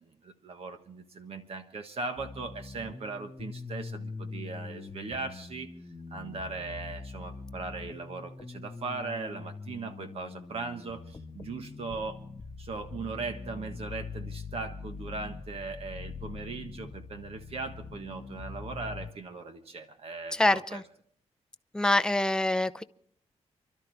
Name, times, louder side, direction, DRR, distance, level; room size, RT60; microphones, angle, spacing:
voice 1, 0.2-5.7 6.1-12.2 12.6-20.8, right 4 dB, 55° right, 1.4 m, -39 dB
sound 1, 2.2-19.1, left 4 dB, 30° left, 1.3 m, -43 dB
voice 2, 20.3-20.8 21.7-22.8, left 1 dB, 5° left, 0.6 m, -25 dB
29.0 x 12.5 x 3.5 m
wide cardioid pair, 140°, 12 cm